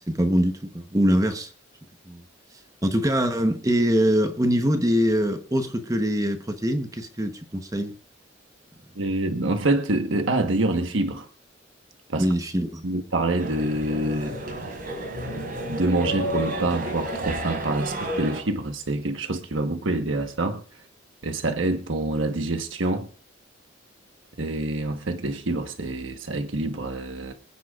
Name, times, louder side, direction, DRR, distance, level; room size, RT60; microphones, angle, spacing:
voice 1, 0.1-1.5 2.1-2.2 2.8-7.9 12.2-12.9, equal, 20° right, 1.0 m, -23 dB
voice 2, 8.9-11.3 12.1-12.3 12.8-14.7 15.3-20.6 21.2-23.1 24.4-27.3, right 2 dB, 75° right, 1.2 m, -26 dB
sound 1, 13.4-18.4, right 1 dB, 45° right, 5.2 m, -31 dB
25.5 x 10.0 x 2.5 m
head